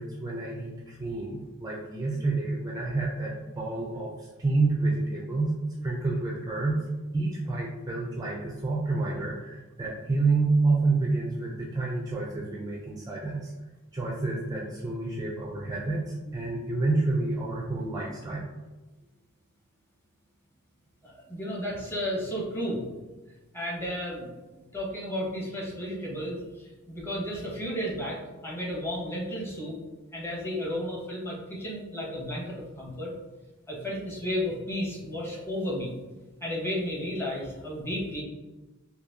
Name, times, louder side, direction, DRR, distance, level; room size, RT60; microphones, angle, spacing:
voice 1, 0.0-5.5 5.8-6.8 7.1-13.5 13.9-18.5, right 3 dB, 15° right, -3 dB, 0.4 m, -29 dB
voice 2, 21.0-22.9 23.5-24.3 24.7-29.8 30.1-33.1 33.7-35.9 36.4-38.2, equal, 10° left, -4 dB, 0.8 m, -33 dB
3.9 x 2.7 x 2.7 m, 1.2 s
head